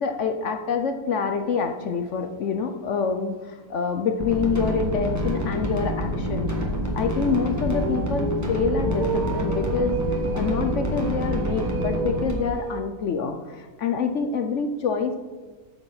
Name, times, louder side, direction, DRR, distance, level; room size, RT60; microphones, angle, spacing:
voice 1, 0.0-6.6 6.9-15.2, left 5 dB, 60° left, 6 dB, 0.9 m, -26 dB
sound 1, 1.4-1.7 2.2-2.3 2.7-2.8 4.8-12.8, right 5 dB, 75° right, 1.4 m, -33 dB
sound 2, 4.2-12.3, equal, 10° right, 1.4 m, -27 dB
14.0 x 4.8 x 5.7 m, 1.3 s
omnidirectional pair, 1.6 m